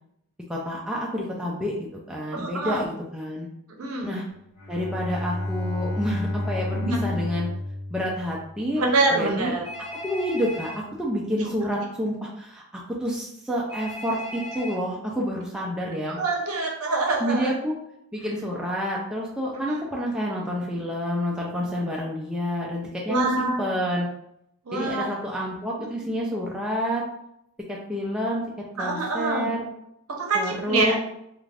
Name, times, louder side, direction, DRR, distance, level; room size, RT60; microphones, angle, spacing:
voice 1, 0.5-3.5 4.0-4.2 4.7-7.5 7.9-8.8 9.2-9.5 10.0-10.7 11.0-12.6 13.0-16.2 17.2-17.7 18.1-24.1 24.7-27.0 27.7-28.4 28.8-29.7 30.3-31.0, equal, 5° right, -4 dB, 0.3 m, -28 dB
voice 2, 2.3-2.9 3.8-4.2 6.7-7.0 8.8-9.6 11.4-11.5 16.1-17.5 19.5-19.8 23.1-23.6 24.6-25.1 28.8-29.5 30.2-31.0, right 3 dB, 75° right, 0 dB, 0.7 m, -25 dB
Bowed string instrument, 4.6-8.9, left 1 dB, 80° left, 0.8 m, -31 dB
Telephone, 9.6-10.8 13.7-14.8, left 1 dB, 40° right, 0.9 m, -37 dB
2.4 x 2.3 x 3.3 m, 0.78 s
head